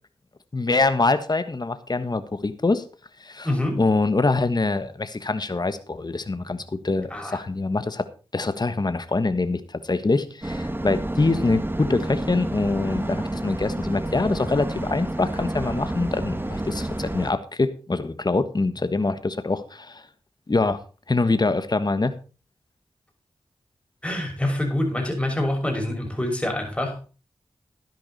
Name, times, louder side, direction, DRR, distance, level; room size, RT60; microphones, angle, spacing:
voice 1, 0.5-2.8 3.2-3.5 3.8-8.1 8.3-20.1 20.5-20.8 21.1-22.1, left 3 dB, 40° left, 11 dB, 1.3 m, -24 dB
voice 2, 3.4-3.8 7.1-7.4 24.0-27.1, left 1 dB, 10° left, 2 dB, 6.0 m, -26 dB
sound 1, 10.4-17.3, right 1 dB, 20° right, 1.5 m, -29 dB
12.5 x 10.5 x 4.2 m, 0.34 s
cardioid pair, 45°, 10 cm